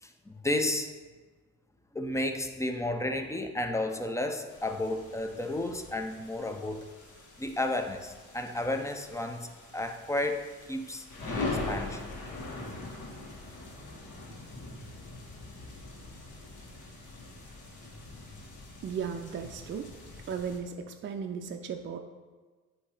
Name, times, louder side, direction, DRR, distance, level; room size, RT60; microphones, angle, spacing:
voice 1, 0.0-0.9 1.9-6.8 7.4-9.5 9.7-12.0, left 1 dB, 10° left, 6 dB, 0.6 m, -32 dB
sound 1, 4.5-20.6, left 2 dB, 80° left, 1.4 m, -42 dB
voice 2, 18.8-19.9 20.3-22.0, right 6 dB, 40° right, 4 dB, 0.5 m, -36 dB
8.4 x 2.9 x 4.8 m, 1.4 s
cardioid pair, 90°, 30 cm